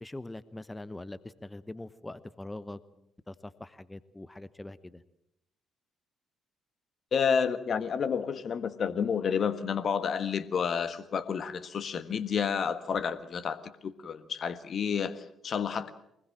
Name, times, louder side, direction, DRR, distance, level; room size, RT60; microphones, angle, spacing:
voice 1, 0.0-2.8 3.3-5.0, left 2 dB, 15° left, 16 dB, 1.1 m, -43 dB
voice 2, 7.1-15.9, left 6 dB, 45° left, 13 dB, 1.5 m, -30 dB
24.5 x 20.5 x 7.5 m, 0.79 s
figure-of-eight pair, 45°, 0 cm